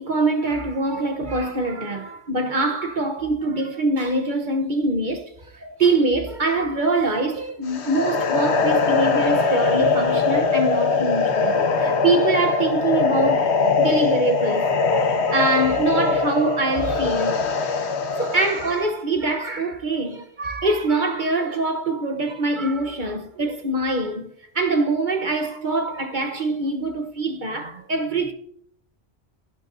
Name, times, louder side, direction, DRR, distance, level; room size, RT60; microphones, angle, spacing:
voice 1, 0.0-17.4 18.2-24.3 24.5-28.3, right 2 dB, 50° right, 1.2 m, -24 dB
sound 1, 7.7-18.8, left 4 dB, 85° left, 1.3 m, -21 dB
12.0 x 11.5 x 2.6 m
omnidirectional pair, 1.1 m